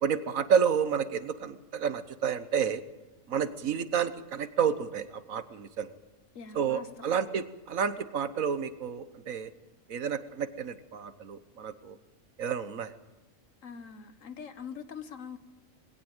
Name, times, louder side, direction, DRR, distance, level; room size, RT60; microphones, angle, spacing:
voice 1, 0.0-2.8 3.3-5.9 6.5-9.5 9.9-12.0 12.4-12.9, right 7 dB, 80° right, 1.5 m, -30 dB
voice 2, 6.3-7.2 13.6-15.4, left 6 dB, 70° left, 1.6 m, -43 dB
20.5 x 17.0 x 9.0 m
omnidirectional pair, 1.4 m